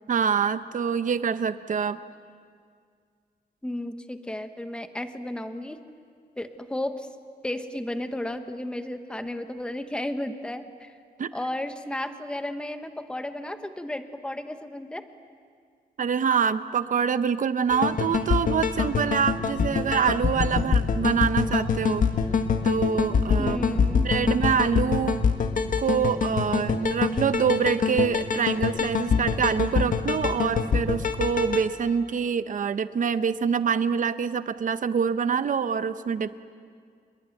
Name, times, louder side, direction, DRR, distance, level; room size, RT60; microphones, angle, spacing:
voice 1, 0.1-2.0 11.2-11.3 16.0-22.1 22.6-23.6 24.0-25.2 25.8-36.4, right 6 dB, 50° right, 12 dB, 0.8 m, -25 dB
voice 2, 3.6-5.8 6.4-7.1 7.4-10.9 11.3-15.0 23.4-24.1, left 1 dB, 5° left, 8 dB, 1.1 m, -33 dB
sound 1, 17.7-31.7, left 5 dB, 50° left, 1.4 m, -25 dB
27.0 x 21.5 x 9.2 m, 2.1 s
wide cardioid pair, 180°, 17 cm